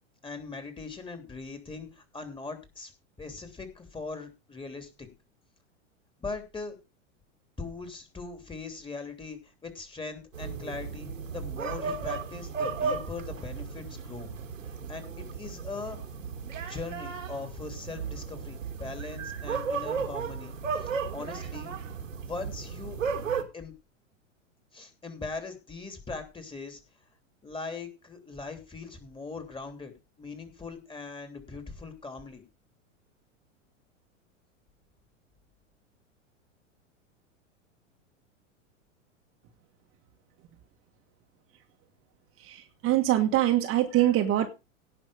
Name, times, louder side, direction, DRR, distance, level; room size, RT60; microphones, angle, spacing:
voice 1, 0.2-2.9 3.2-5.1 6.2-6.8 7.6-14.3 14.7-16.0 16.7-21.7 22.1-23.0 23.5-23.8 24.7-26.8 27.4-32.4, left 4 dB, 15° left, 3.2 m, -40 dB
sound 1, 10.3-23.4, right 5 dB, 80° right, 2.2 m, -35 dB
voice 2, 42.4-44.5, right 13 dB, 35° right, 1.6 m, -24 dB
17.5 x 5.9 x 5.1 m
hypercardioid pair, 95°, 38 cm